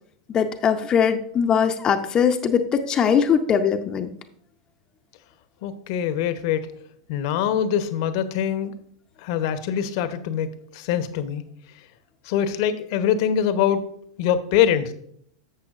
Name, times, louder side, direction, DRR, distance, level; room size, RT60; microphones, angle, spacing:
voice 1, 0.3-4.1, left 7 dB, 30° left, 6 dB, 0.7 m, -21 dB
voice 2, 5.6-6.7 7.1-8.7 9.2-11.5 12.2-13.8 14.2-14.9, left 9 dB, 60° left, 11 dB, 0.9 m, -23 dB
11.0 x 7.6 x 2.5 m, 0.65 s
hypercardioid pair, 100°, 3 cm